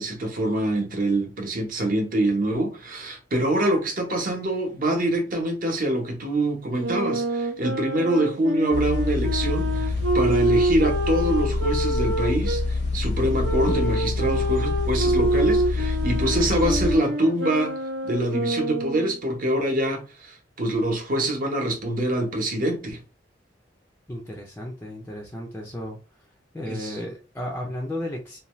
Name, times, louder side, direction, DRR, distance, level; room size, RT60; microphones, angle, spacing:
voice 1, 0.0-17.8 18.0-23.0 26.7-27.0, right 1 dB, 50° right, 0.8 m, -25 dB
Wind instrument woodwind instrument, 6.8-12.6 13.4-19.2, right 1 dB, 85° right, 0.6 m, -27 dB
sound 1, 8.7-17.0, left 3 dB, 65° left, 0.7 m, -26 dB
voice 2, 24.1-26.0 26.5-28.4, left 1 dB, 10° left, 0.4 m, -34 dB
2.6 x 2.2 x 3.0 m
head